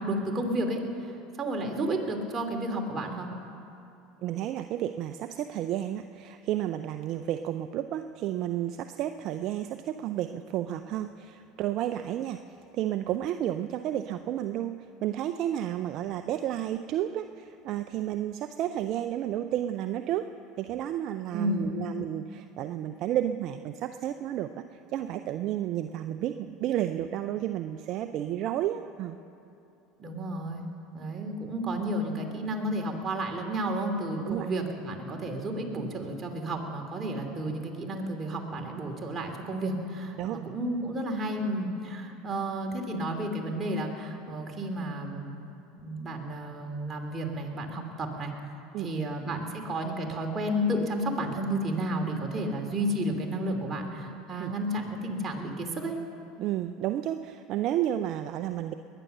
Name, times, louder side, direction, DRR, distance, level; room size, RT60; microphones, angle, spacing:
voice 1, 0.0-3.3 21.3-21.8 30.0-30.7 30.9-45.3 45.8-48.3 48.8-55.9, right 1 dB, 30° right, 2 dB, 2.8 m, -32 dB
voice 2, 4.2-20.3 20.6-29.2 34.2-34.5 40.2-40.4 48.7-48.9 54.4-54.5 56.4-58.7, right 12 dB, 55° right, 9 dB, 0.5 m, -31 dB
21.0 x 10.0 x 6.7 m, 2.7 s
hypercardioid pair, 85°, 0 cm